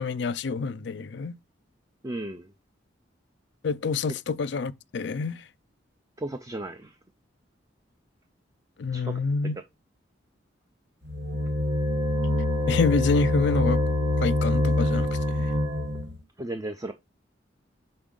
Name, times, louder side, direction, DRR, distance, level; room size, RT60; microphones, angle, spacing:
voice 1, 0.0-1.3 3.6-5.4 8.8-9.5 12.7-13.8 14.2-15.5, left 4 dB, 65° left, 0.4 m, -27 dB
voice 2, 2.0-2.5 6.2-6.9 8.9-9.2 16.4-16.9, right 1 dB, 20° right, 0.4 m, -34 dB
sound 1, 11.0-16.2, left 1 dB, 65° right, 1.1 m, -25 dB
6.0 x 4.3 x 3.7 m
head